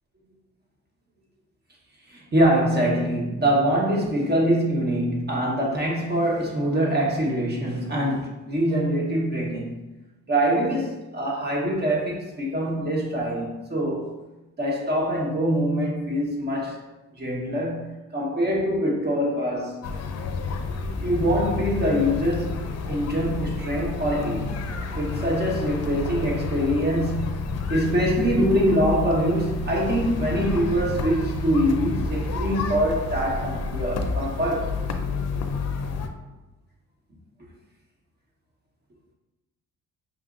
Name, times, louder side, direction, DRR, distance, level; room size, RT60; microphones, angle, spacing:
voice 1, 2.1-9.7 10.3-14.1 14.6-16.8 17.1-19.8 21.0-24.5 25.0-34.9, equal, 35° right, -2 dB, 1.3 m, -24 dB
sound 1, 19.8-36.1, left 4 dB, 55° left, 0.5 m, -30 dB
6.1 x 2.7 x 2.5 m, 1.1 s
cardioid pair, 90°, 30 cm